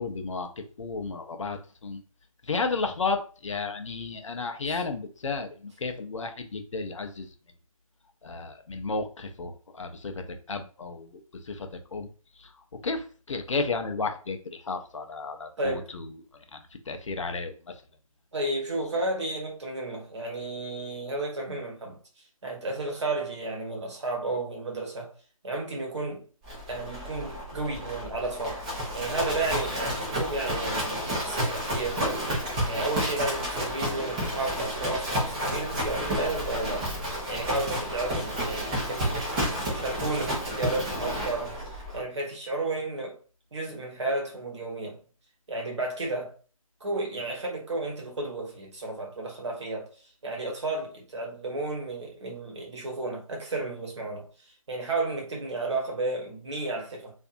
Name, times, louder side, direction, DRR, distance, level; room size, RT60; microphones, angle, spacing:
voice 1, 0.0-2.0 2.4-7.3 8.2-11.1 11.4-12.1 12.4-12.5 12.8-16.1 16.5-16.6 16.9-17.7, left 4 dB, 60° left, 0.5 m, -33 dB
voice 2, 15.6-15.9 18.3-22.0 22.4-25.1 25.4-26.3 26.7-28.6 28.9-32.3 32.7-36.9 37.3-39.3 39.6-41.6 41.9-43.2 43.5-45.0 45.5-46.3 46.8-49.9 50.2-57.1, right 2 dB, 50° right, 1.0 m, -32 dB
Livestock farm animals working animals, 26.4-42.0, equal, 15° right, 0.6 m, -31 dB
2.6 x 2.5 x 2.4 m
figure-of-eight pair, 150°, 19 cm